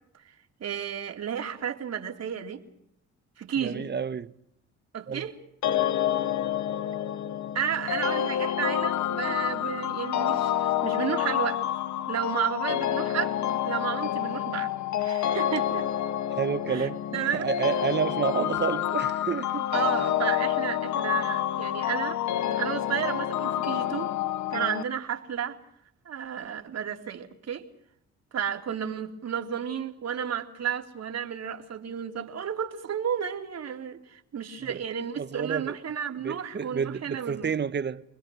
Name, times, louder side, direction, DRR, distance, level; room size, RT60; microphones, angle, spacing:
voice 1, 0.6-2.6 3.4-3.9 4.9-5.4 7.5-11.6 12.1-14.7 15.0-15.9 16.7-17.5 19.7-22.2 22.5-24.1 24.5-25.6 26.1-27.7 28.3-37.5, right 8 dB, 55° right, 3.6 m, -32 dB
voice 2, 3.6-4.3 5.1-5.3 16.4-17.0 17.3-19.7 34.6-34.9 35.2-35.8 36.2-38.0, right 6 dB, 35° right, 1.3 m, -30 dB
sound 1, 5.6-24.8, left 11 dB, 65° left, 1.1 m, -28 dB
29.0 x 21.0 x 6.4 m
cardioid pair, 90°, 30 cm